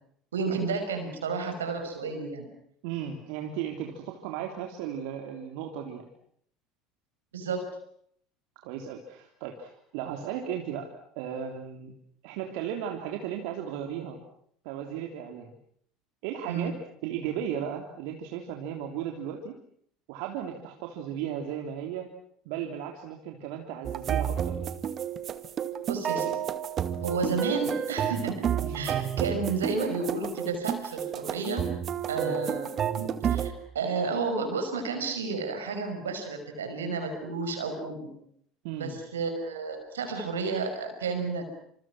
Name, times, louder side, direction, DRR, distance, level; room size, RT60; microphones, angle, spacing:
voice 1, 0.3-2.5 7.3-7.7 16.5-16.7 25.9-26.4 27.0-31.7 32.1-38.1 38.8-41.5, right 4 dB, 85° right, 7 dB, 5.8 m, -32 dB
voice 2, 2.8-6.1 8.6-11.9 12.2-14.2 14.6-15.5 16.2-16.7 17.0-19.6 20.1-22.1 22.5-24.7 28.6-29.0 32.2-32.4 38.6-39.0, right 9 dB, 65° right, 2 dB, 3.4 m, -35 dB
sound 1, 23.8-33.5, right 9 dB, 45° right, 2.0 m, -30 dB
28.5 x 27.0 x 6.2 m, 0.67 s
hypercardioid pair, 70°, 0 cm